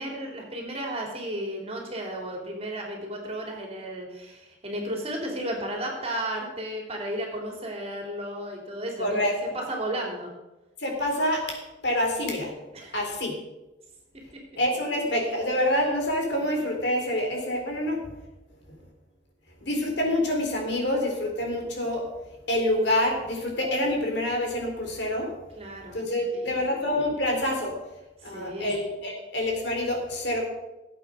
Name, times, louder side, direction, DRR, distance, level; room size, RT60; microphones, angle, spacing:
voice 1, 0.0-10.3 12.7-12.9 25.6-26.6 28.2-28.7, right 1 dB, 30° right, 0 dB, 3.3 m, -34 dB
voice 2, 9.0-9.3 10.8-11.6 11.8-12.5 12.9-13.3 14.6-18.0 19.6-22.1 22.5-25.3 25.9-27.7 28.2-30.5, left 1 dB, 60° left, 1 dB, 3.9 m, -26 dB
16.5 x 8.5 x 6.4 m, 1.0 s
head